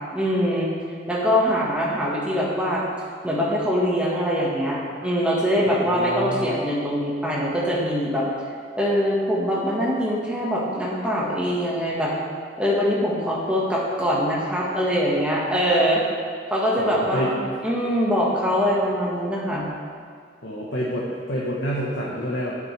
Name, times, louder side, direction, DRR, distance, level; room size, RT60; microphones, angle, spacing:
voice 1, 0.1-0.7 1.1-2.8 3.2-8.2 8.8-12.1 12.6-16.0 16.5-19.7, equal, 5° right, -5 dB, 1.6 m, -23 dB
voice 2, 5.7-6.6 16.8-17.3 20.4-22.6, equal, 85° left, -6 dB, 1.3 m, -28 dB
10.5 x 8.6 x 3.4 m, 2.2 s
head